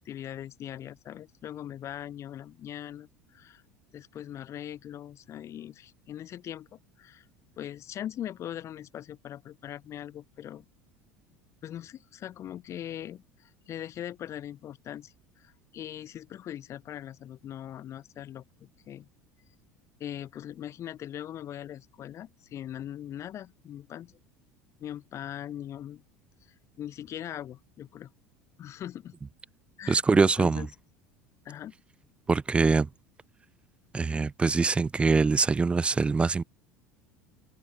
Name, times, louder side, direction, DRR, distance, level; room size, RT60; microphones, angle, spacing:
voice 1, 0.0-3.6 3.9-7.3 7.6-10.7 11.6-19.1 20.0-24.2 24.8-26.0 26.4-28.1 28.6-29.2 29.8-30.7 31.4-31.7, left 11 dB, 40° left, 1.9 m, -41 dB
voice 2, 29.9-30.7 32.3-32.9 33.9-36.4, right 4 dB, 15° right, 0.3 m, -23 dB
figure-of-eight pair, 70°, 8 cm